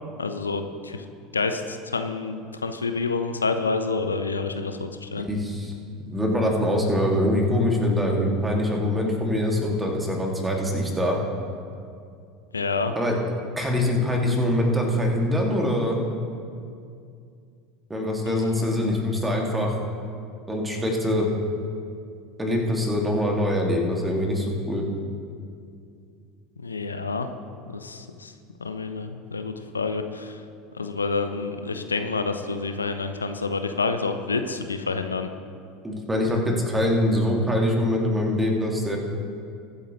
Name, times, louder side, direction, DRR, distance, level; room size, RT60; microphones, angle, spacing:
voice 1, 0.2-1.0 1.3-5.3 12.5-12.9 18.3-18.7 26.6-27.3 27.7-28.3 28.6-30.4 30.7-35.3, left 4 dB, 80° left, 8 dB, 0.6 m, -28 dB
voice 2, 5.2-5.7 6.1-11.2 13.0-13.2 13.6-16.0 17.9-19.7 20.5-21.3 22.4-24.8 35.8-39.0, left 1 dB, 10° right, 0 dB, 2.4 m, -24 dB
23.0 x 8.7 x 3.2 m, 2.4 s
figure-of-eight pair, 75°, 0 cm